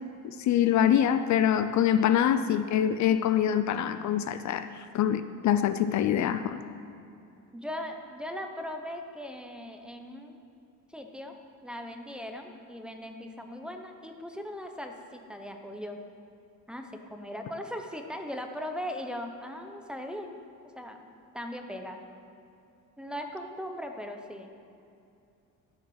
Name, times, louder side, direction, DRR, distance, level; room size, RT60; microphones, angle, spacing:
voice 1, 0.2-6.6, left 10 dB, 60° left, 11 dB, 0.5 m, -25 dB
voice 2, 7.5-10.4 10.9-11.3 11.6-16.0 16.7-20.4 20.7-21.1 21.3-22.0 23.0-24.5, equal, 5° right, 3 dB, 0.7 m, -39 dB
13.5 x 7.1 x 6.4 m, 2.6 s
cardioid pair, 160°, 33 cm